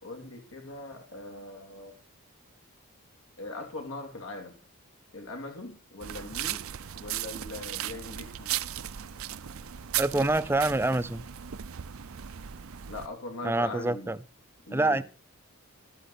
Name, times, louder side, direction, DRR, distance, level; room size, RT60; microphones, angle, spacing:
voice 1, 0.0-2.0 3.4-4.6 5.1-6.7 6.9-8.6 12.9-14.1 14.7-15.0, left 2 dB, 75° left, 3.5 m, -41 dB
sound 1, 6.0-13.1, right 11 dB, 75° right, 0.6 m, -36 dB
voice 2, 10.0-11.2 13.4-14.2 14.7-15.0, right 2 dB, 10° right, 0.5 m, -26 dB
13.0 x 12.5 x 4.3 m
head